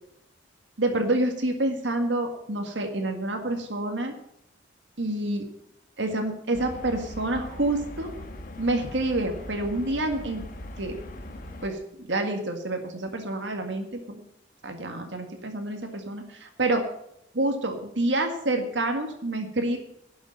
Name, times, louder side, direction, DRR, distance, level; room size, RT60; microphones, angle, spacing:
voice 1, 0.8-4.1 5.0-5.4 6.0-8.1 8.6-10.4 10.8-11.0 11.6-11.8 12.1-14.2 14.6-16.8 17.3-19.8, right 2 dB, 85° right, 4 dB, 1.9 m, -28 dB
sound 1, 6.5-11.7, left 1 dB, 50° left, 1.6 m, -40 dB
11.5 x 7.1 x 8.9 m, 0.77 s
head